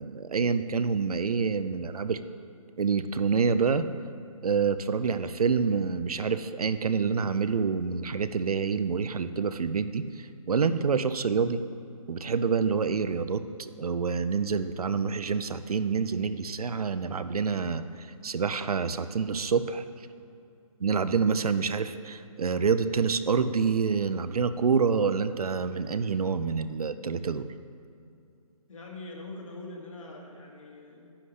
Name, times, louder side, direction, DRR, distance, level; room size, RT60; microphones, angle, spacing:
voice 1, 0.0-2.2 2.8-3.9 4.4-11.6 12.1-19.8 20.8-27.5, right 5 dB, 80° right, 12 dB, 0.6 m, -27 dB
voice 2, 28.7-31.1, left 2 dB, 60° left, -1 dB, 2.0 m, -43 dB
9.9 x 9.8 x 3.3 m, 2.6 s
hypercardioid pair, 170°, 19 cm